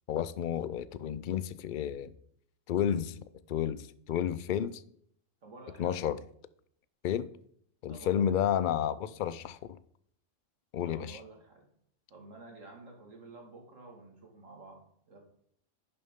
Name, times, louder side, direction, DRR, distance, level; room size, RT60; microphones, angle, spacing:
voice 1, 0.1-2.1 2.7-3.2 3.5-3.8 4.1-4.8 5.8-6.2 7.0-7.3 7.8-9.6 10.7-11.2, left 9 dB, 60° left, 0.5 m, -31 dB
voice 2, 5.4-6.1 7.9-8.6 10.8-11.7 12.1-14.8 15.1-15.2, right 3 dB, 90° right, 2.3 m, -51 dB
11.0 x 6.9 x 3.6 m
omnidirectional pair, 1.3 m